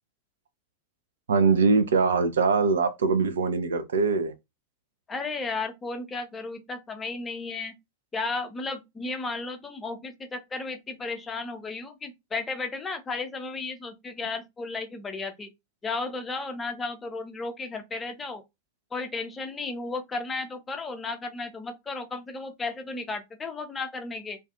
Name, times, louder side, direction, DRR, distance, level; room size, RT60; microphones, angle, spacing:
voice 1, 1.3-4.3, right 4 dB, 65° right, 0.4 m, -22 dB
voice 2, 5.1-7.7 8.1-15.5 15.8-18.4 18.9-24.4, left 3 dB, 15° left, 0.5 m, -34 dB
2.4 x 2.2 x 2.4 m
figure-of-eight pair, 90°, 0 cm